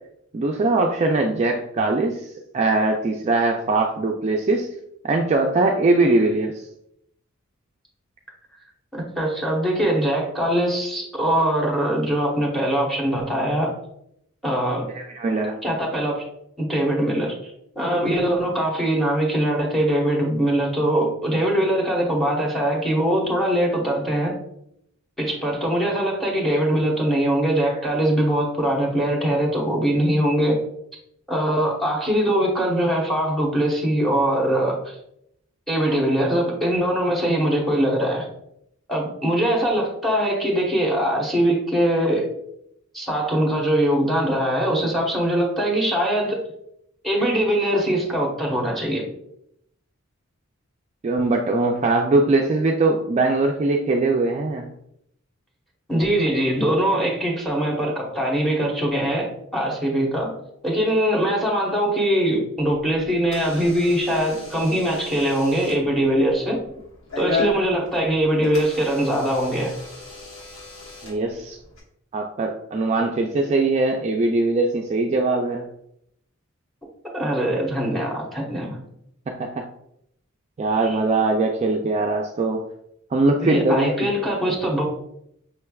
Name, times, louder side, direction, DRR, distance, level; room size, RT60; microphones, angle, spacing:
voice 1, 0.3-2.2 2.5-4.7 5.0-6.6 14.9-15.6 51.0-54.7 71.0-71.6 72.1-75.7 79.3-79.7 80.6-82.6 83.1-84.1, right 2 dB, 30° right, 1 dB, 0.3 m, -21 dB
voice 2, 8.9-13.7 14.4-14.9 15.6-16.2 16.6-24.3 25.2-30.6 31.3-34.9 35.7-38.3 38.9-42.3 42.9-46.4 47.0-49.0 55.9-60.3 60.6-66.6 67.2-69.7 77.1-78.8 80.8-81.0 83.4-84.8, right 1 dB, ahead, -2 dB, 1.0 m, -22 dB
Door / Alarm, 62.6-71.8, left 3 dB, 70° left, 1.4 m, -35 dB
5.8 x 3.3 x 2.3 m, 0.75 s
head